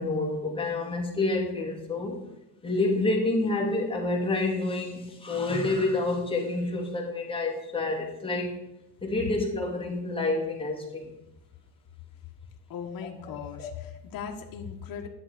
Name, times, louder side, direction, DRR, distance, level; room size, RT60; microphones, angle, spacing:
voice 1, 0.0-2.2 2.6-8.5 9.0-11.1 13.3-13.7, left 2 dB, 15° left, -2 dB, 2.1 m, -28 dB
voice 2, 12.7-15.1, left 7 dB, 55° left, 2 dB, 1.3 m, -38 dB
11.0 x 7.1 x 5.0 m, 0.89 s
cardioid pair, 165°, 41 cm